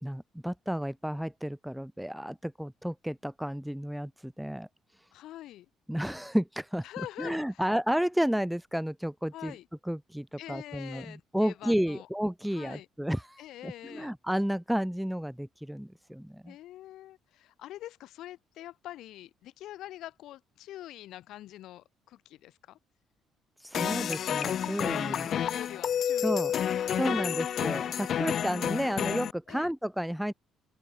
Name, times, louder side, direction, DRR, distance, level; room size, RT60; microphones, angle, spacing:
voice 1, 0.0-4.7 5.9-6.8 7.2-9.5 9.9-16.5 23.6-25.3 26.2-26.5 26.9-30.3, equal, ahead, 3.1 m, -32 dB
voice 2, 5.1-5.7 6.8-7.6 9.3-9.7 10.4-12.1 12.5-12.9 13.4-14.1 16.5-22.8 24.9-26.6 27.0-27.6 29.5-29.7, left 14 dB, 75° left, 6.4 m, -45 dB
sound 1, 23.7-29.3, left 9 dB, 55° left, 4.7 m, -30 dB
open air
cardioid pair, 95°, 0 cm